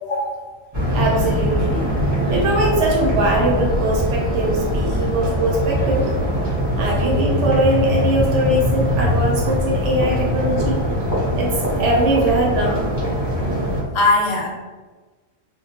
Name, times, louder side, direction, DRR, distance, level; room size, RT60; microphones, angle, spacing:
voice 1, 0.0-0.5 13.9-14.5, left 2 dB, 80° left, -1 dB, 1.0 m, -20 dB
sound 1, 0.7-13.8, equal, 30° right, 0.5 m, -21 dB
voice 2, 0.9-1.9 2.3-6.1 6.8-10.8 11.3-12.9, right 1 dB, 65° right, -2 dB, 0.9 m, -21 dB
2.3 x 2.2 x 2.8 m, 1.3 s
omnidirectional pair, 1.4 m